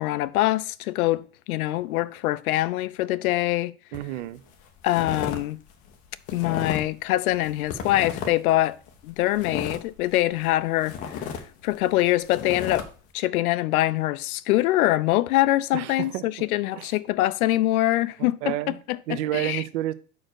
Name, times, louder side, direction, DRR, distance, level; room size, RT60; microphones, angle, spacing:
voice 1, 0.0-3.7 4.8-5.6 6.3-8.8 9.0-11.3 11.6-12.9 13.1-19.6, left 16 dB, 70° left, 0.5 m, -24 dB
sound 1, 3.9-4.2 4.5-5.4 5.7-7.0 7.3-8.5 8.9-10.5 10.8-12.8, left 7 dB, 20° left, 0.4 m, -33 dB
voice 2, 3.9-4.4 15.7-16.2 16.8-16.9 18.2-18.8 19.1-19.9, right 14 dB, 50° right, 0.6 m, -30 dB
5.0 x 4.5 x 6.1 m
supercardioid pair, 155°, 45 cm